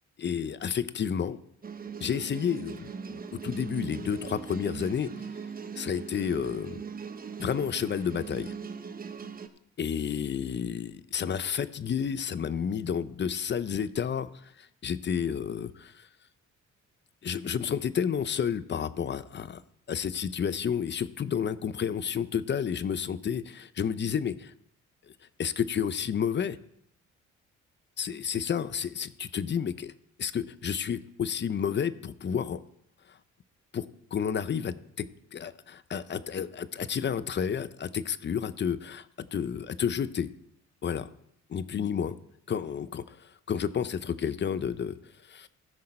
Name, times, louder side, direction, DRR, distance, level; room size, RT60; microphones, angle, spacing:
voice 1, 0.2-1.4 2.0-5.1 5.8-6.8 7.4-8.5 9.8-16.1 17.2-19.6 19.9-24.5 25.4-26.6 28.0-29.9 30.2-32.6 33.1-33.2 33.7-40.3 40.8-41.1 41.5-42.2 42.5-45.5, left 7 dB, 40° left, 15 dB, 0.6 m, -31 dB
sound 1, 1.6-9.5, right 6 dB, 30° right, 0.8 m, -40 dB
15.0 x 6.5 x 4.3 m, 0.73 s
cardioid pair, 90°, 30 cm